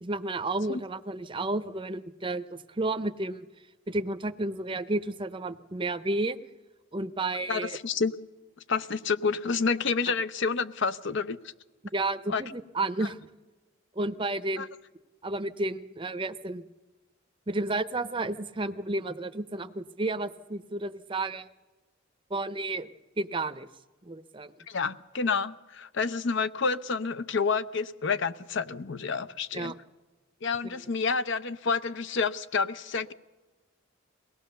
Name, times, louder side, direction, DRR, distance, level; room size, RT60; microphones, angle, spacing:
voice 1, 0.0-3.5 3.9-6.4 6.9-7.8 11.9-13.2 14.0-14.7 15.2-16.6 17.5-21.5 22.3-22.9 23.2-23.7 24.0-24.5 29.5-29.7, right 2 dB, 25° right, 0.7 m, -31 dB
voice 2, 7.5-8.1 8.7-11.4 12.3-12.4 13.0-13.1 14.6-14.7 24.7-29.7 30.4-33.1, left 5 dB, 60° left, 0.7 m, -29 dB
22.5 x 18.0 x 6.7 m
head